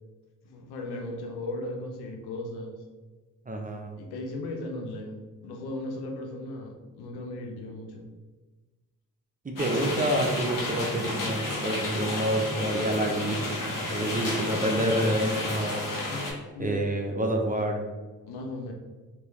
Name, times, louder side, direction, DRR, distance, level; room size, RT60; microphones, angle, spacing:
voice 1, 0.4-2.8 4.0-5.1 5.4-8.0 16.1-16.8 18.2-18.7, left 2 dB, 85° left, 1 dB, 0.7 m, -37 dB
voice 2, 3.5-3.9 9.4-15.9 16.6-17.8, right 1 dB, 20° right, 2 dB, 0.6 m, -28 dB
sound 1, 9.6-16.3, left 2 dB, 60° left, 1.2 m, -31 dB
3.4 x 2.9 x 3.1 m, 1.2 s
supercardioid pair, 50°, 38 cm